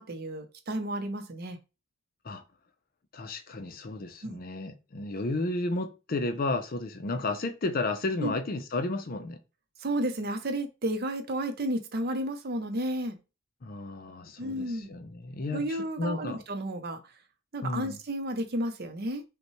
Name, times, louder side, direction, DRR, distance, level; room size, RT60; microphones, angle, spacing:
voice 1, 0.0-1.6 4.2-4.4 8.2-8.3 9.8-13.2 14.4-15.0 15.5-17.0 17.5-19.2, right 1 dB, 50° right, 0.6 m, -32 dB
voice 2, 3.1-9.4 13.6-16.4 17.6-18.0, left 2 dB, 45° left, 0.5 m, -33 dB
5.4 x 2.2 x 3.0 m
head